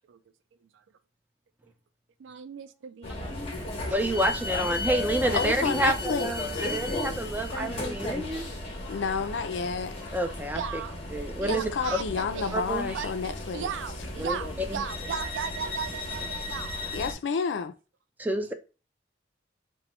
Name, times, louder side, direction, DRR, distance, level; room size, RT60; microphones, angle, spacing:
voice 1, 2.2-4.1 4.6-4.8 10.5-11.0 11.4-12.6 12.9-17.0, right 6 dB, 90° right, 0.3 m, -37 dB
sound 1, 3.0-17.1, left 2 dB, 35° left, 0.7 m, -34 dB
voice 2, 3.9-8.5 10.1-10.6 11.1-11.6 12.5-13.0 14.2-14.4 14.7-14.8 18.2-18.5, right 1 dB, 10° right, 0.3 m, -29 dB
voice 3, 5.3-6.8 8.9-10.2 11.5-13.7 16.9-17.7, left 5 dB, 70° left, 0.4 m, -30 dB
3.0 x 2.2 x 3.0 m
head